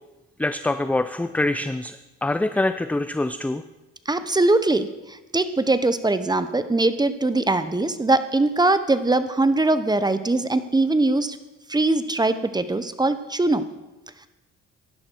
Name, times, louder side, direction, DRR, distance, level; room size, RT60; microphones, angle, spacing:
voice 1, 0.4-3.6, left 2 dB, 5° left, 11 dB, 0.5 m, -25 dB
voice 2, 4.1-11.4 11.7-13.7, right 2 dB, 15° right, 11 dB, 1.0 m, -21 dB
16.5 x 11.5 x 4.7 m, 1.0 s
cardioid pair, 90°, 30 cm